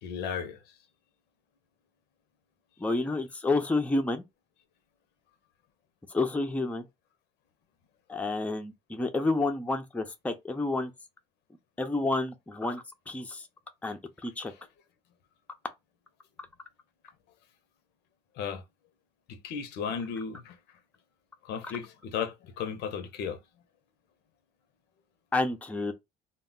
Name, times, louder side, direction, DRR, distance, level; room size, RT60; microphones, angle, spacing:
voice 1, 0.0-0.6 18.4-18.6 19.3-20.6 21.4-23.4, left 7 dB, 80° left, 0.6 m, -35 dB
voice 2, 2.8-4.2 6.1-6.8 8.1-10.9 11.8-13.4 13.8-14.5 25.3-25.9, left 2 dB, 10° left, 0.4 m, -29 dB
2.1 x 2.0 x 3.6 m
cardioid pair, 110°, 17 cm